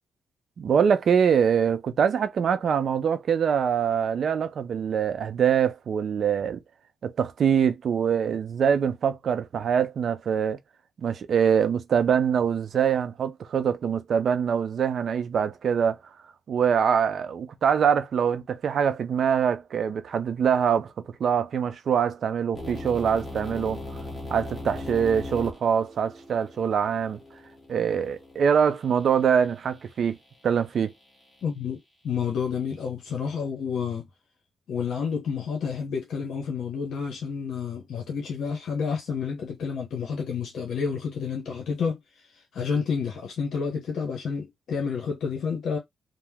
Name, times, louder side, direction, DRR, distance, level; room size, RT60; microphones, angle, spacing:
voice 1, 0.6-6.6 7.0-10.6 11.0-16.0 16.5-20.9 21.2-23.8 24.3-27.2 27.7-30.2 30.4-30.9, right 7 dB, 60° right, 0.4 m, -24 dB
sound 1, 22.5-28.5, left 2 dB, 10° left, 1.1 m, -38 dB
voice 2, 31.4-34.1 34.7-42.0 42.5-45.8, left 6 dB, 75° left, 0.8 m, -30 dB
2.8 x 2.0 x 3.4 m
cardioid pair, 110°, 0 cm